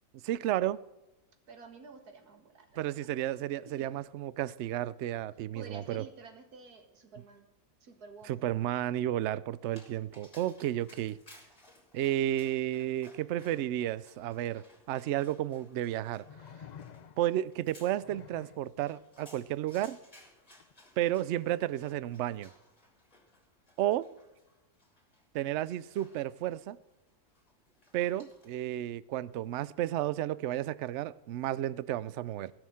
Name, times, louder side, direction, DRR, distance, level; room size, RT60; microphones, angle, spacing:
voice 1, 0.2-0.8 2.8-6.0 8.3-11.2 11.9-16.2 17.2-20.0 21.0-22.5 23.8-24.1 25.3-26.8 27.9-32.5, right 13 dB, 65° right, 0.7 m, -32 dB
voice 2, 1.5-3.1 3.7-3.9 5.5-7.5 7.8-8.5, right 4 dB, 90° right, 2.2 m, -50 dB
Dog, 9.6-28.7, left 1 dB, 25° left, 3.2 m, -61 dB
sound 1, 14.9-15.0 16.2-17.4 18.0-18.7 20.6-20.7, left 8 dB, 75° left, 0.4 m, -50 dB
16.0 x 6.4 x 7.6 m
omnidirectional pair, 1.6 m